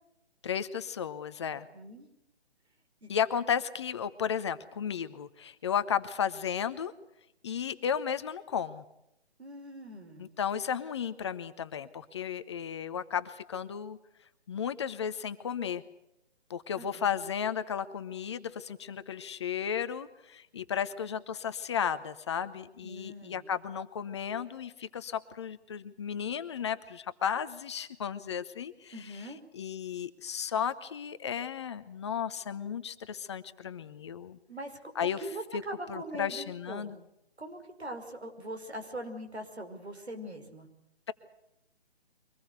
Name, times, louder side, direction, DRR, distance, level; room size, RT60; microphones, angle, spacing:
voice 1, 0.4-1.7 3.1-6.9 7.4-8.8 10.2-14.0 14.5-15.8 16.5-34.4 34.9-35.3 35.5-35.6 35.9-37.0, left 8 dB, 25° left, 11 dB, 0.9 m, -34 dB
voice 2, 1.7-2.1 3.0-3.1 9.4-10.3 16.8-17.1 22.8-23.4 28.9-29.4 34.5-36.9 37.4-40.7, right 1 dB, 85° right, 6 dB, 5.4 m, -42 dB
24.0 x 19.0 x 8.2 m, 0.82 s
figure-of-eight pair, 150°, 32 cm